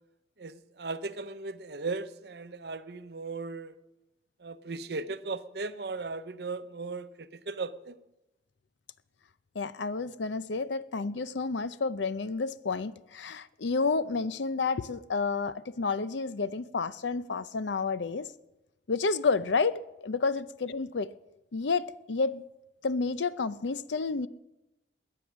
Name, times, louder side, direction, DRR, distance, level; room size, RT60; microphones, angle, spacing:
voice 1, 0.4-3.7 4.4-7.9, right 3 dB, 65° right, 12 dB, 0.7 m, -37 dB
voice 2, 9.5-18.3 18.9-21.1 21.5-22.4 22.8-24.3, left 4 dB, 80° left, 15 dB, 0.6 m, -30 dB
21.0 x 8.9 x 6.3 m, 0.97 s
head